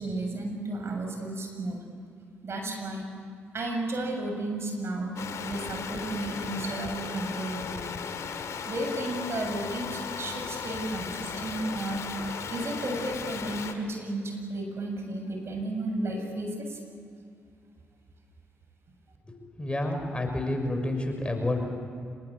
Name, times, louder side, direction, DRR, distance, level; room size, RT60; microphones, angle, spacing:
voice 1, 0.0-1.8 2.4-3.1 3.5-5.2 5.4-7.8 8.6-12.0 12.4-16.8, right 2 dB, 50° right, 3 dB, 7.3 m, -33 dB
sound 1, 5.2-13.7, left 6 dB, 65° left, 2.4 m, -36 dB
voice 2, 19.3-21.7, left 1 dB, 20° left, 4 dB, 5.9 m, -29 dB
26.5 x 23.0 x 8.9 m, 2.4 s
hypercardioid pair, 45°, 6 cm